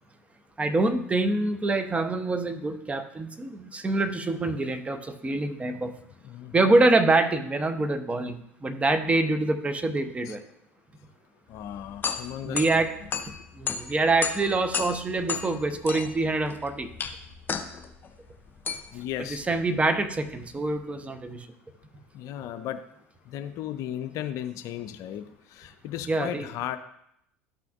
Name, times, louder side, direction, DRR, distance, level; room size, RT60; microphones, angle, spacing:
voice 1, 0.6-5.9 6.5-10.4 12.4-12.9 13.6-16.9 19.3-21.5 26.1-26.5, right 2 dB, 15° right, 9 dB, 0.9 m, -25 dB
voice 2, 6.2-6.8 10.3-10.4 11.5-13.1 18.9-19.4 22.1-22.9 23.3-26.8, left 11 dB, 50° left, 10 dB, 0.5 m, -36 dB
sound 1, 11.5-20.7, left 6 dB, 25° left, 0.9 m, -35 dB
13.0 x 5.8 x 2.5 m, 0.76 s
figure-of-eight pair, 70°, 7 cm